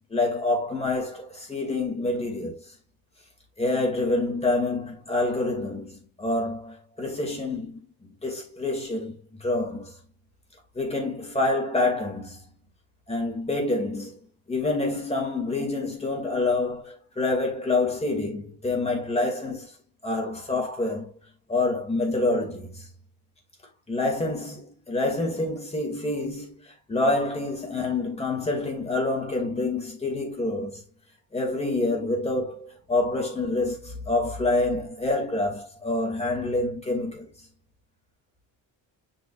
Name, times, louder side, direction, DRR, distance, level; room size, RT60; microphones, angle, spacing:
voice 1, 0.1-2.6 3.6-10.0 10.7-12.4 13.1-14.2 14.5-19.7 20.0-21.1 21.5-22.9 23.9-30.8 31.3-37.3, left 2 dB, 15° left, 2.4 m, -27 dB
7.5 x 5.3 x 2.5 m
wide cardioid pair, 160°, 47 cm